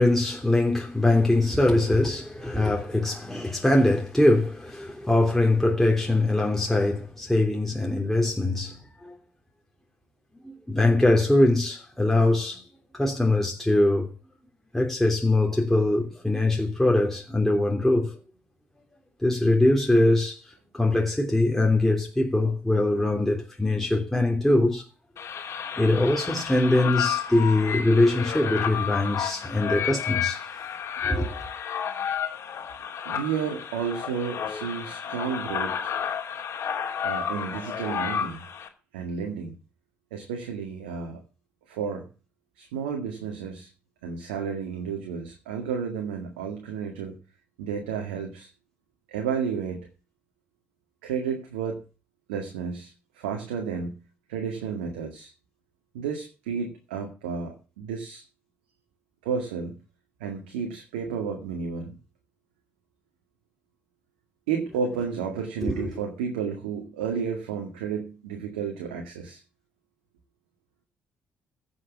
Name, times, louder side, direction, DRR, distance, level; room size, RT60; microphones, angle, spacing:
voice 1, 0.0-9.1 10.4-12.6 12.9-14.1 14.7-18.2 19.2-20.4 20.7-24.8 25.8-30.4 31.0-31.3 65.6-65.7, left 2 dB, 5° left, 3.1 m, -22 dB
sound 1, 25.2-38.7, left 8 dB, 55° left, 2.7 m, -31 dB
voice 2, 33.1-35.9 37.0-38.4 38.9-39.5 40.1-41.2 41.7-42.1 42.6-43.7 44.0-47.2 47.6-48.5 49.1-49.9 51.0-51.8 52.3-54.0 54.3-55.3 55.9-58.2 59.2-59.7 60.2-62.0 64.5-69.4, right 6 dB, 85° right, 2.0 m, -32 dB
15.5 x 6.5 x 7.1 m
hypercardioid pair, 50°, 5 cm